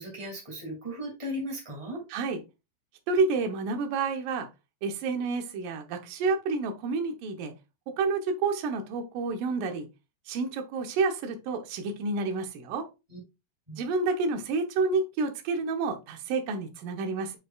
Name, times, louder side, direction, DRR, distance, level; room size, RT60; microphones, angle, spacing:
voice 1, 0.0-2.0 13.1-13.2 13.7-13.8, equal, 30° right, 0.5 m, -36 dB
voice 2, 3.1-4.5 4.8-7.5 8.0-9.9 10.3-12.9 13.8-17.3, right 4 dB, 75° right, 2.1 m, -29 dB
8.9 x 4.6 x 2.3 m
omnidirectional pair, 5.0 m